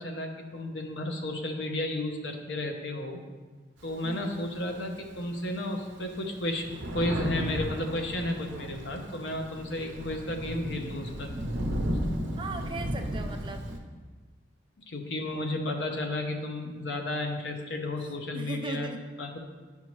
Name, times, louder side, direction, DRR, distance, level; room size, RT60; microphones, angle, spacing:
voice 1, 0.0-3.2 3.8-11.3 14.9-18.9 19.2-19.4, left 1 dB, 60° left, 3 dB, 0.8 m, -33 dB
Thunder, 3.8-5.1 5.6-5.7 6.0-13.8, equal, 70° right, 0.9 m, -34 dB
voice 2, 4.0-4.4 12.4-13.6 18.3-19.0, right 3 dB, 25° right, 4 dB, 0.4 m, -38 dB
8.7 x 5.5 x 3.1 m, 1.4 s
head